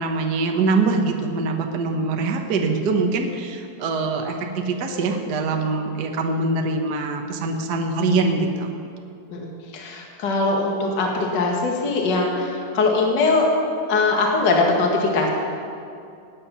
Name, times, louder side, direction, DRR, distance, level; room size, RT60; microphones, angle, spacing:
voice 1, 0.0-8.7, right 3 dB, 75° right, 3 dB, 0.9 m, -23 dB
voice 2, 9.3-13.5 13.9-15.3, left 3 dB, 40° left, 0 dB, 2.0 m, -21 dB
20.0 x 9.3 x 5.7 m, 2.5 s
omnidirectional pair, 3.7 m